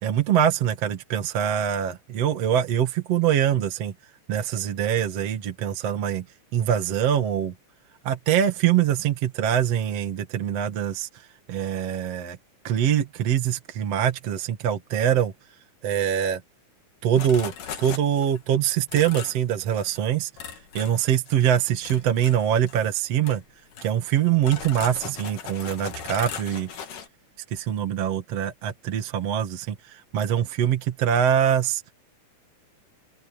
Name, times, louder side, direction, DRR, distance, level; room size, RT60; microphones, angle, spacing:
voice 1, 0.0-3.9 4.3-6.2 6.5-7.5 8.0-11.1 11.5-12.4 12.6-15.3 15.8-16.4 17.0-17.5 17.8-20.3 20.7-23.4 23.8-26.7 27.5-31.8, right 9 dB, 55° right, 2.7 m, -24 dB
sound 1, 17.2-18.4 18.9-19.4 19.7-20.0 20.4-21.5 21.8-22.9 23.2-23.4 23.7-27.1, left 7 dB, 80° left, 3.8 m, -38 dB
open air
omnidirectional pair, 3.6 m